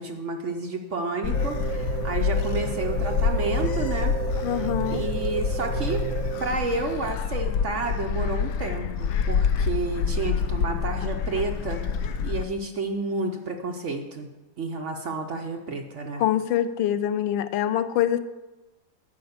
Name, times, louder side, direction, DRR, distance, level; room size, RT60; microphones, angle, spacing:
voice 1, 0.0-4.1 4.4-6.1 6.4-11.8 12.2-14.3 14.6-16.2, right 3 dB, 55° right, 3 dB, 0.8 m, -30 dB
Gull seagull, 1.2-12.4, left 6 dB, 70° left, 1.1 m, -27 dB
sound 1, 1.3-6.8, right 11 dB, 90° right, 0.7 m, -33 dB
voice 2, 4.4-5.0 16.2-18.2, left 11 dB, 85° left, 12 dB, 1.3 m, -24 dB
11.0 x 4.7 x 8.0 m, 1.1 s
omnidirectional pair, 2.1 m